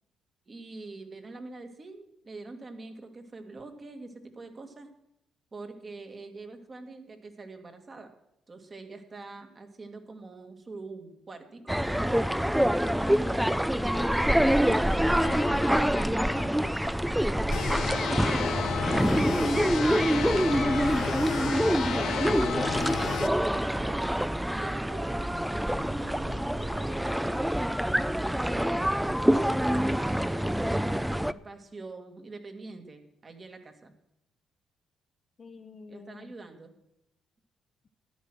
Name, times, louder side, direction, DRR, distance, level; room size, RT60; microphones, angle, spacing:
voice 1, 0.5-4.9 5.5-8.1 8.5-12.3 15.1-15.8 17.0-19.1 20.0-22.4 22.9-24.2 24.5-27.4 28.2-29.3 29.8-33.9 35.9-36.8, right 3 dB, 35° right, 6 dB, 2.0 m, -45 dB
sound 1, 11.7-31.3, equal, 5° right, 0.4 m, -26 dB
voice 2, 12.9-16.6 35.4-36.3, left 5 dB, 40° left, 9 dB, 0.8 m, -42 dB
sound 2, 17.5-23.3, left 10 dB, 70° left, 0.7 m, -33 dB
13.5 x 10.5 x 6.2 m, 0.82 s
cardioid pair, 90°, 0 cm